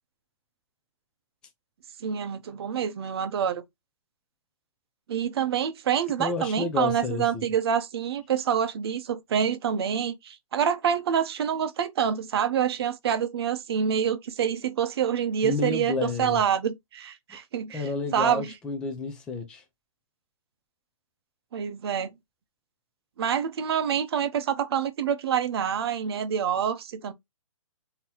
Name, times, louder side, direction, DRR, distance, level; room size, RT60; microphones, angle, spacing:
voice 1, 2.0-3.6 5.1-18.5 21.5-22.1 23.2-27.1, right 8 dB, 50° right, 0.7 m, -27 dB
voice 2, 6.2-7.5 15.4-16.4 17.7-19.6, left 3 dB, 5° left, 0.4 m, -30 dB
3.7 x 2.8 x 2.8 m
hypercardioid pair, 160°, 17 cm